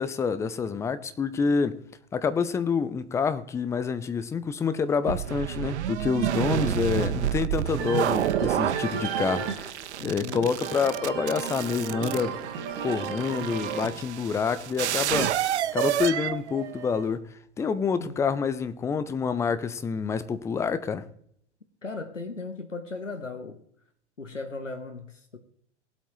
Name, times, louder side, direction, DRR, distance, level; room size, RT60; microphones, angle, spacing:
voice 1, 0.0-1.8 2.1-9.7 10.0-12.4 12.8-15.3 15.7-17.2 17.6-21.0, left 5 dB, 10° left, 0.4 m, -27 dB
sound 1, 5.1-17.1, right 11 dB, 70° right, 0.6 m, -29 dB
voice 2, 6.7-7.3 10.0-10.5 18.0-18.3 21.8-23.6 24.2-25.4, left 4 dB, 90° left, 1.2 m, -37 dB
sound 2, 7.8-17.2, right 6 dB, 45° right, 1.8 m, -35 dB
Mallet percussion, 13.3-15.4, right 11 dB, 15° right, 4.7 m, -48 dB
18.5 x 8.2 x 3.2 m
figure-of-eight pair, 95°, 36 cm